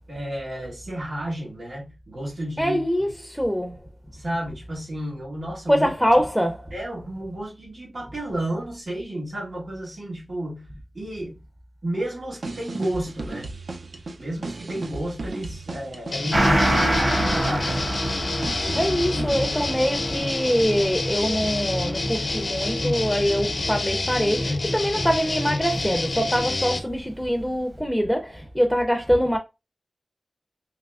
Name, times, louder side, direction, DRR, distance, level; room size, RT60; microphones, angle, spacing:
voice 1, 0.1-3.1 4.1-5.9 6.7-10.7 10.9-11.4 11.8-13.5 14.2-18.2, right 1 dB, 60° right, 1.8 m, -32 dB
voice 2, 2.6-3.8 5.7-6.7 18.8-29.4, equal, ahead, 0.5 m, -24 dB
sound 1, 12.3-19.8, right 3 dB, 75° right, 0.4 m, -35 dB
sound 2, 16.1-26.8, left 2 dB, 65° left, 0.6 m, -28 dB
Gong, 16.3-25.3 25.6-25.7, right 1 dB, 40° right, 0.9 m, -28 dB
3.4 x 2.8 x 2.3 m
wide cardioid pair, 85°, 0 cm